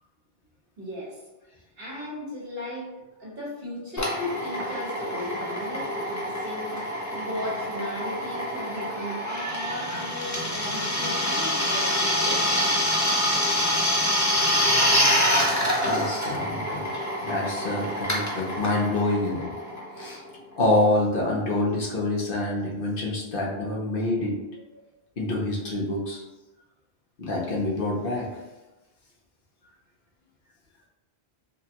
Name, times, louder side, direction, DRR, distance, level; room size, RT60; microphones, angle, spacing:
voice 1, 0.8-1.2 1.8-2.9 3.2-12.4, left 1 dB, 60° right, -6 dB, 1.6 m, -36 dB
Drill, 4.0-20.3, equal, 20° left, 0.6 m, -26 dB
voice 2, 15.8-16.9 17.2-19.5 20.0-20.2 20.6-24.4 25.2-26.2 27.2-28.3, left 2 dB, 60° left, -2 dB, 1.0 m, -26 dB
4.9 x 2.3 x 2.9 m, 1.1 s
omnidirectional pair, 1.1 m